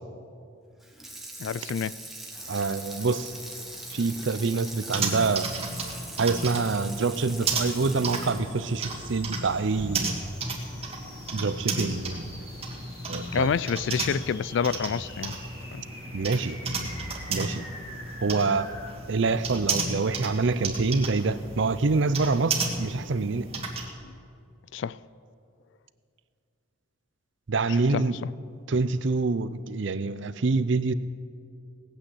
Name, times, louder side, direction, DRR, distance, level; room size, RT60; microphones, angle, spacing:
Water tap faucet / Sink (filling or washing), 0.8-10.0 10.4-10.5, right 2 dB, ahead, 1.4 m, -42 dB
voice 1, 1.4-2.0 13.3-15.4 15.7-15.8 24.0-24.2 24.7-25.0 27.7-28.3, left 6 dB, 60° left, 0.3 m, -28 dB
sound 1, 2.3-18.9, left 1 dB, 20° left, 2.4 m, -46 dB
voice 2, 2.5-3.3 3.9-5.5 6.2-10.1 11.3-12.3 13.1-13.5 16.1-16.6 17.3-17.6 18.2-18.7 19.1-23.5 27.5-28.2 28.7-30.9, right 4 dB, 60° right, 0.5 m, -26 dB
sound 2, 4.9-23.9, right 3 dB, 30° right, 1.8 m, -33 dB
18.0 x 8.8 x 7.9 m
head